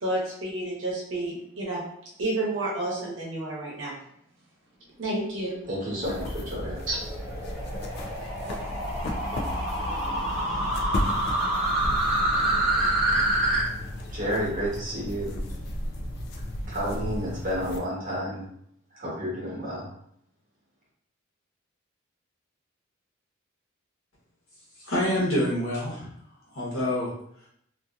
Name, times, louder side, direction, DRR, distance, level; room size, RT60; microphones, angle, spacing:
voice 1, 0.0-1.8 2.2-3.9 5.0-5.6 6.9-7.0, right 2 dB, 70° right, -5 dB, 0.9 m, -30 dB
sound 1, 5.6-13.6, right 1 dB, 5° right, 0.9 m, -27 dB
voice 2, 5.7-6.8 14.1-15.3 16.7-18.5 18.9-19.9, equal, 40° right, -6 dB, 1.1 m, -30 dB
sound 2, 6.0-17.8, left 1 dB, 55° left, 0.4 m, -34 dB
voice 3, 24.8-26.1 26.5-27.1 27.4-27.5, left 1 dB, 80° left, -6 dB, 1.1 m, -27 dB
2.6 x 2.5 x 2.3 m, 0.71 s
head